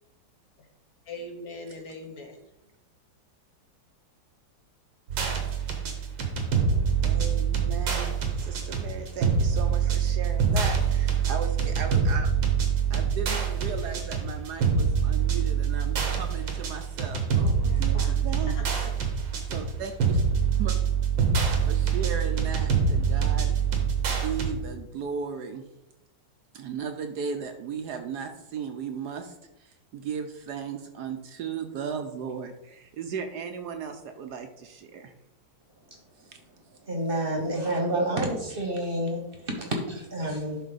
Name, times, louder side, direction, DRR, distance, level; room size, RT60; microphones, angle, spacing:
voice 1, 1.1-2.4 17.6-18.2 18.5-18.9, left 2 dB, 55° left, 3 dB, 1.3 m, -41 dB
sound 1, 5.1-24.5, right 6 dB, 90° right, 2.0 m, -25 dB
voice 2, 7.0-12.3 12.9-18.9 19.5-20.2 20.6-20.7 21.7-23.6 24.1-25.6 26.5-35.1 36.3-36.4, right 6 dB, 70° right, 6 dB, 1.1 m, -36 dB
voice 3, 36.9-40.6, right 1 dB, 35° right, 2 dB, 1.1 m, -29 dB
11.0 x 4.1 x 4.0 m, 0.90 s
omnidirectional pair, 2.0 m